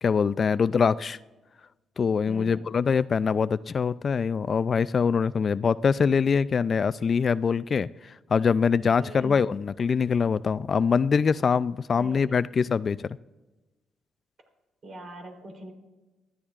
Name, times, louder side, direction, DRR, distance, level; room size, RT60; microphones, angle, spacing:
voice 1, 0.0-1.2 2.0-13.1, left 6 dB, 45° left, 16 dB, 0.3 m, -24 dB
voice 2, 2.3-2.7 9.0-9.4 12.0-12.4 14.8-15.7, equal, 50° right, 3 dB, 3.4 m, -42 dB
20.0 x 14.0 x 2.4 m, 1.1 s
cardioid pair, 90°, 0 cm